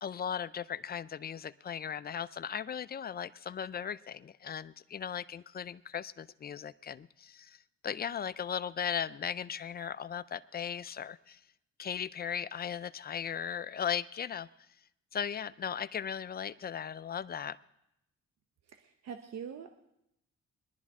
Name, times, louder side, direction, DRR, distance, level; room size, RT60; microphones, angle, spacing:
voice 1, 0.0-11.4 11.8-14.5 15.1-17.6, left 8 dB, 30° left, 15 dB, 0.4 m, -37 dB
voice 2, 18.6-19.8, right 7 dB, 60° right, 7 dB, 0.9 m, -44 dB
21.0 x 11.5 x 3.6 m, 0.83 s
cardioid pair, 90°, 30 cm